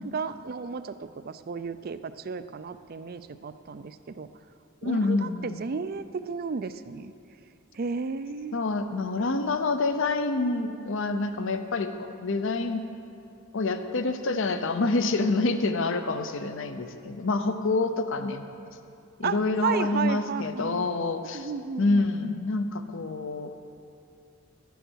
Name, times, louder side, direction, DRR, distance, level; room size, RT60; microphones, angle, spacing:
voice 1, 0.1-4.3 4.8-7.1 7.7-8.6 19.2-19.4 19.6-20.9 21.3-22.1, right 5 dB, 45° right, 12 dB, 0.4 m, -33 dB
voice 2, 4.8-5.6 8.5-12.8 13.5-18.5 19.2-21.5 21.8-23.5, left 3 dB, 60° left, 9 dB, 0.7 m, -27 dB
12.0 x 9.2 x 6.3 m, 2.7 s
head